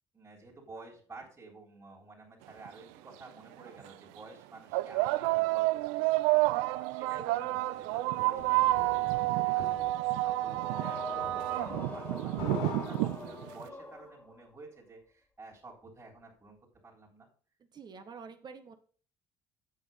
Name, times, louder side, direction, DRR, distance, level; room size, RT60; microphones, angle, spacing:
voice 1, 0.1-9.7 10.1-16.6 16.8-17.3, right 3 dB, 25° right, -2 dB, 3.6 m, -51 dB
sound 1, 2.7-2.8 3.7-3.9 4.7-13.6, right 19 dB, 90° right, 0.4 m, -29 dB
sound 2, 7.9-13.8, left 3 dB, 85° left, 3.2 m, -44 dB
sound 3, 10.5-14.5, left 2 dB, 15° left, 2.2 m, -44 dB
voice 2, 17.7-18.7, right 5 dB, 40° right, 8 dB, 1.4 m, -47 dB
8.2 x 6.5 x 5.5 m, 0.43 s
supercardioid pair, 85°, 11 cm